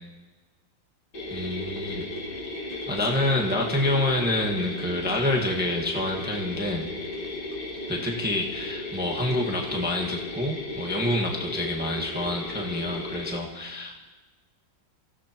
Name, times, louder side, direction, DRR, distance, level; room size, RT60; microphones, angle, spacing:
sound 1, 1.1-13.4, left 2 dB, 85° left, 3.4 m, -35 dB
voice 1, 1.3-2.1 2.7-6.9 7.9-14.1, left 1 dB, 5° right, -1 dB, 1.2 m, -27 dB
25.5 x 16.5 x 3.0 m, 1.2 s
omnidirectional pair, 2.2 m